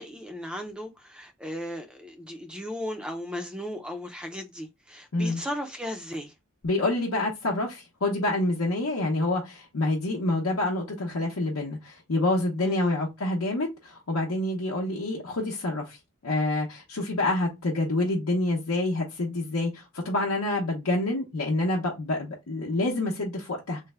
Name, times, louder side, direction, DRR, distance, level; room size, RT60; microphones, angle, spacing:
voice 1, 0.0-6.3 12.6-13.0, equal, 5° right, 0.4 m, -36 dB
voice 2, 6.6-23.8, left 2 dB, 85° left, 0.7 m, -27 dB
3.3 x 2.1 x 3.3 m
head